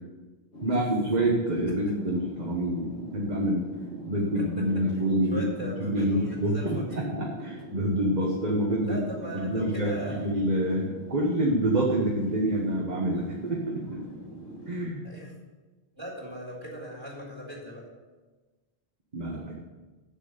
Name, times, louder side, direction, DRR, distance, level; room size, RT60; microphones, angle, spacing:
sound 1, 0.5-14.9, equal, 80° left, 2.4 m, -42 dB
voice 1, 0.6-3.6 4.1-9.0 9.3-14.0 14.7-15.0 19.1-19.6, right 1 dB, 40° right, -2 dB, 1.3 m, -27 dB
voice 2, 4.9-6.9 8.8-10.3 15.0-15.3 16.0-17.9, right 1 dB, 25° right, -3 dB, 3.9 m, -39 dB
7.6 x 7.2 x 7.7 m, 1.3 s
omnidirectional pair, 1.1 m